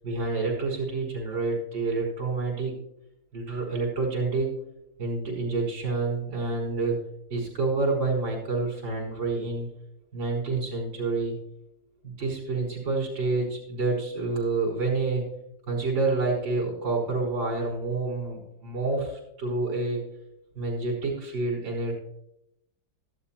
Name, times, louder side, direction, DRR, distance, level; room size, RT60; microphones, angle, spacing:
voice 1, 0.0-2.7 3.3-4.5 5.0-7.0 7.3-9.7 10.1-11.3 12.0-15.2 15.7-20.0 20.6-21.9, right 3 dB, 85° right, -9 dB, 5.2 m, -28 dB
15.5 x 12.0 x 2.9 m, 0.82 s
omnidirectional pair, 2.0 m